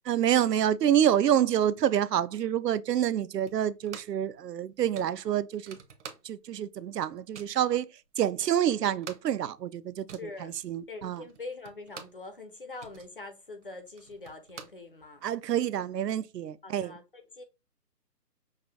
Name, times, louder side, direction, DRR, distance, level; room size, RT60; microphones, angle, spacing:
voice 1, 0.1-5.8 6.2-11.2 15.2-17.0, right 10 dB, 75° right, 0.6 m, -27 dB
sound 1, 3.5-4.3 4.6-4.7 4.9-6.6 6.9-7.6 8.2-8.3 8.5-12.3 12.6-15.4, right 6 dB, 45° right, 0.8 m, -49 dB
voice 2, 10.2-10.5 10.9-15.3 16.6-17.4, left 3 dB, 35° left, 0.5 m, -44 dB
5.6 x 2.3 x 3.4 m
figure-of-eight pair, 150°, 49 cm